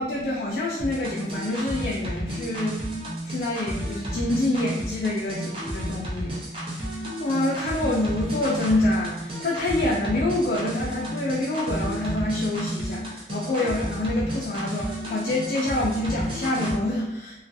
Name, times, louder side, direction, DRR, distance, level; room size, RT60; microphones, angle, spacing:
voice 1, 0.0-2.8 3.2-17.4, left 1 dB, 50° left, -3 dB, 0.3 m, -27 dB
sound 1, 0.8-16.8, right 1 dB, 30° right, 0.5 m, -32 dB
2.4 x 2.2 x 2.5 m, 0.97 s
head